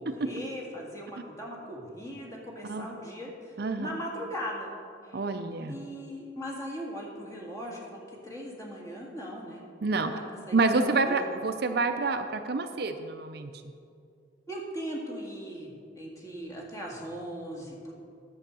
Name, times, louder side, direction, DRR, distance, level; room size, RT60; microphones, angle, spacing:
voice 1, 0.0-4.7 5.0-5.2 5.7-9.6 9.9-11.4 14.5-17.9, equal, 20° left, -2 dB, 1.9 m, -39 dB
voice 2, 3.6-3.9 5.1-5.8 9.8-10.1 10.5-13.5, right 3 dB, 55° right, 7 dB, 0.6 m, -28 dB
10.5 x 7.1 x 6.2 m, 2.3 s
head